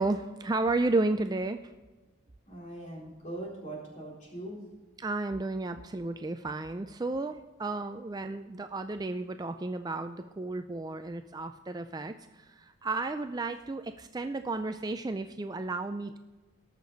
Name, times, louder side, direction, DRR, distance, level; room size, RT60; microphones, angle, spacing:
voice 1, 0.0-1.6 5.0-16.2, right 2 dB, 20° right, 8 dB, 0.4 m, -32 dB
voice 2, 2.5-4.6, right 1 dB, 40° left, -3 dB, 4.0 m, -41 dB
19.0 x 6.7 x 4.0 m, 1.2 s
head